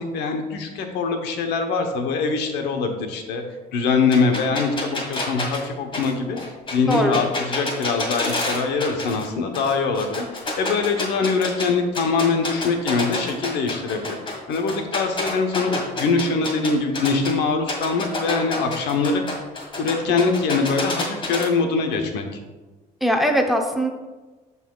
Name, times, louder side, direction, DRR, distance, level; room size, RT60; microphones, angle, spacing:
voice 1, 0.0-3.4 3.7-6.4 6.7-14.2 14.5-19.4 19.8-22.3, left 4 dB, 85° left, 4 dB, 0.9 m, -23 dB
sound 1, 4.1-9.3 9.5-11.7 11.9-17.3 17.7-21.5, left 2 dB, 30° left, 1.7 m, -28 dB
voice 2, 6.9-7.2 23.0-23.9, equal, ahead, 3 dB, 0.7 m, -20 dB
12.5 x 4.1 x 2.3 m, 1.2 s
cardioid pair, 110°, 17 cm